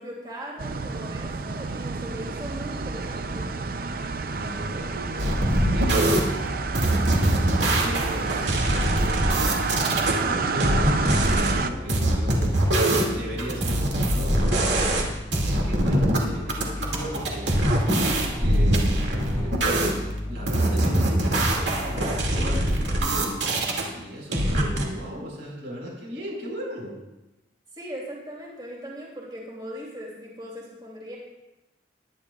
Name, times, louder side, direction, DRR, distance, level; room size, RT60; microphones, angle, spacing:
voice 1, 0.0-3.5 14.7-15.0 27.7-31.2, equal, 25° right, -4 dB, 2.8 m, -39 dB
sound 1, 0.6-11.7, right 4 dB, 50° right, 0.6 m, -29 dB
voice 2, 4.2-5.4 5.7-6.4 6.8-7.2 7.7-9.4 10.1-15.0 15.4-17.5 18.4-19.6 20.3-27.0, equal, 90° right, -2 dB, 5.0 m, -36 dB
sound 2, 5.2-6.2 6.7-10.1 10.6-11.5 11.9-13.1 13.4-15.1 15.3-16.2 16.5-19.9 20.5-23.8 24.3-24.8, right 1 dB, 70° right, 2.3 m, -23 dB
sound 3, 5.6-23.0, left 1 dB, 15° left, 1.6 m, -36 dB
21.0 x 10.5 x 2.4 m, 1.0 s
head